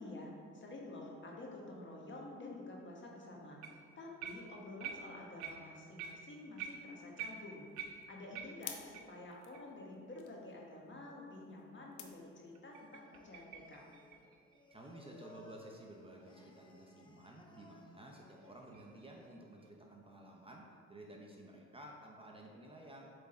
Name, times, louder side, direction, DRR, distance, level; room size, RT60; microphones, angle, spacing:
voice 1, 0.0-3.6 4.0-13.9, left 2 dB, 40° left, -2 dB, 1.4 m, -50 dB
sound 1, 3.6-3.9 4.2-9.2 9.5-9.6 10.1-10.2 10.7-10.8 12.5-15.3 18.1-19.7, right 7 dB, 90° right, 0.6 m, -49 dB
sound 2, 7.3-12.9, left 8 dB, 80° left, 0.7 m, -55 dB
Singing, 12.7-19.3, left 3 dB, 15° left, 0.6 m, -63 dB
voice 2, 14.7-23.1, right 1 dB, 20° right, 0 dB, 0.7 m, -53 dB
7.7 x 3.7 x 4.3 m, 2.2 s
cardioid pair, 90°, 30 cm